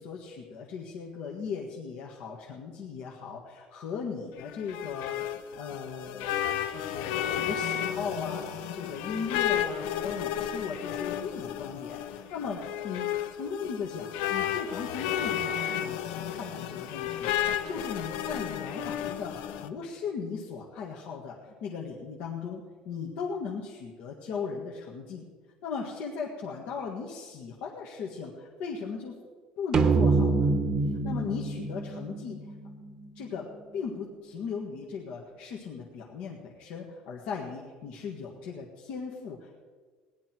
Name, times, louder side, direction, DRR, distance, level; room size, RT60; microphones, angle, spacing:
voice 1, 0.0-5.2 5.6-25.2 25.6-29.2 29.6-30.5 31.0-32.5 33.1-39.6, left 5 dB, 65° left, -2 dB, 1.7 m, -38 dB
sound 1, 4.4-19.7, left 10 dB, 85° left, 0.8 m, -33 dB
sound 2, 29.7-33.2, right 4 dB, 30° right, 0.9 m, -26 dB
18.0 x 11.0 x 4.5 m, 1.5 s
cardioid pair, 165°, 2 cm